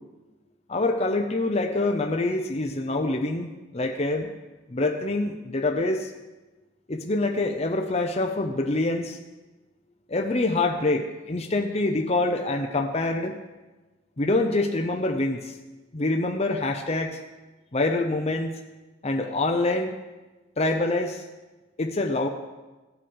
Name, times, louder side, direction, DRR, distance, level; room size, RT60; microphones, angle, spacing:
voice 1, 0.7-4.3 4.7-6.1 6.9-9.2 10.1-13.4 14.2-15.6 15.9-17.2 17.7-18.5 19.0-19.9 20.6-21.2 21.8-22.3, left 2 dB, 35° left, 3 dB, 0.8 m, -25 dB
15.5 x 8.7 x 5.4 m, 1.2 s
head